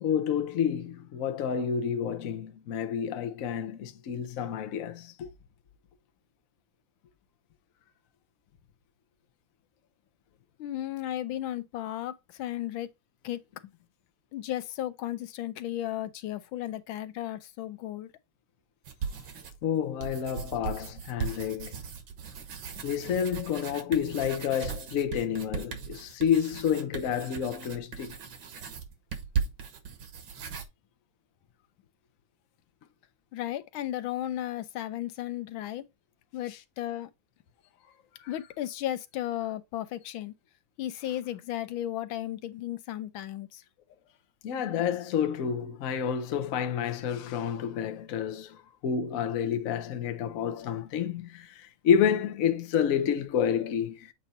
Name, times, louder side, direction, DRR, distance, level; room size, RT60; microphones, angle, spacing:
voice 1, 0.0-5.3 19.6-21.8 22.8-28.2 36.5-36.6 38.2-38.3 44.4-48.6 48.8-54.1, left 8 dB, 55° left, 1.0 m, -29 dB
voice 2, 10.6-12.9 13.2-13.4 14.3-18.1 33.3-35.8 36.3-37.1 38.3-40.3 40.8-43.6, left 13 dB, 85° left, 1.5 m, -34 dB
sound 1, 18.8-19.6 20.0-30.7, right 6 dB, 75° right, 2.0 m, -37 dB
7.9 x 2.9 x 4.1 m
omnidirectional pair, 2.2 m